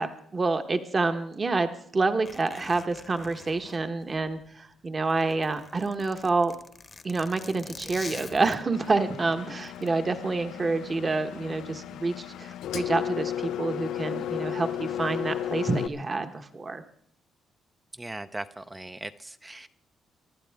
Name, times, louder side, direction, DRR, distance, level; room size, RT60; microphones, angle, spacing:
voice 1, 0.0-6.5 7.0-16.8, right 3 dB, 30° right, 7 dB, 1.2 m, -28 dB
Zipper (clothing), 2.2-4.6 5.0-8.9 9.6-9.9, left 4 dB, 30° left, 1.0 m, -45 dB
Engine, 8.7-15.9, left 10 dB, 80° left, 0.5 m, -34 dB
voice 2, 18.0-19.7, right 2 dB, 15° right, 10 dB, 0.6 m, -39 dB
23.5 x 12.0 x 3.6 m, 0.68 s
cardioid pair, 90°, 0 cm